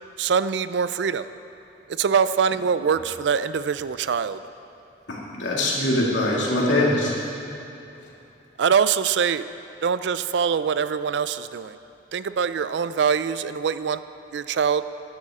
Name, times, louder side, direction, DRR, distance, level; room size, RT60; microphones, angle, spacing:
voice 1, 0.2-1.3 1.9-4.4 8.6-9.4 9.8-11.8 12.1-14.0 14.3-14.8, right 6 dB, 70° right, 14 dB, 0.4 m, -23 dB
voice 2, 5.1-7.2, left 1 dB, 90° left, -4 dB, 2.3 m, -22 dB
15.0 x 10.5 x 3.7 m, 2.8 s
head